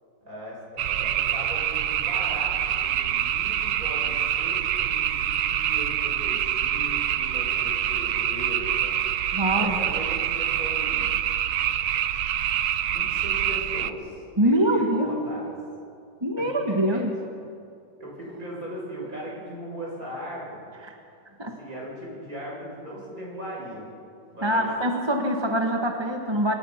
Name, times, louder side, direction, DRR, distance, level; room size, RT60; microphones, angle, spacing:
voice 1, 0.2-9.0 9.5-11.2 12.9-15.5 16.4-16.5 16.9-17.0 18.0-20.7 21.4-23.9 24.3-24.6, equal, 50° right, -4 dB, 7.8 m, -38 dB
sound 1, 0.8-13.9, right 10 dB, 65° right, 1.2 m, -26 dB
voice 2, 9.3-9.8 14.4-15.2 16.2-17.1 20.8-21.0 21.4-21.6 24.4-26.5, right 1 dB, 15° right, 2 dB, 1.4 m, -24 dB
26.0 x 21.5 x 5.9 m, 2.4 s
omnidirectional pair, 1.9 m